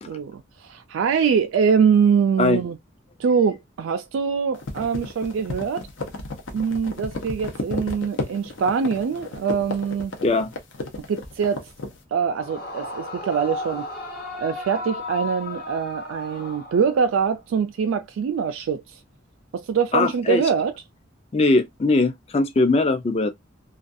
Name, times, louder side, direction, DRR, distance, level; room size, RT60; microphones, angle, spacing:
voice 1, 0.1-2.8 3.2-5.9 6.5-10.1 11.1-11.7 12.1-13.9 14.4-19.0 19.5-20.7, right 6 dB, 85° right, 0.3 m, -23 dB
sound 1, 4.5-12.0, left 2 dB, 75° left, 0.7 m, -32 dB
Yell / Screaming, 12.4-17.3, left 2 dB, 50° left, 0.9 m, -34 dB
voice 2, 19.9-20.4 21.3-23.3, left 3 dB, 30° left, 0.4 m, -20 dB
2.4 x 2.3 x 2.5 m
head